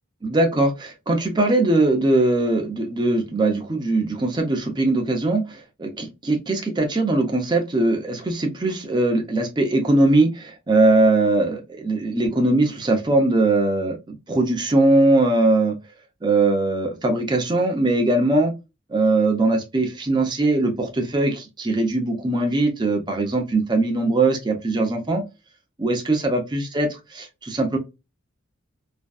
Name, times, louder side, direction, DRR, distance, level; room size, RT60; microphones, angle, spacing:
voice 1, 0.2-15.8 16.2-18.5 18.9-25.2 25.8-27.8, right 2 dB, 20° right, 0.5 m, -21 dB
2.5 x 2.2 x 2.2 m
head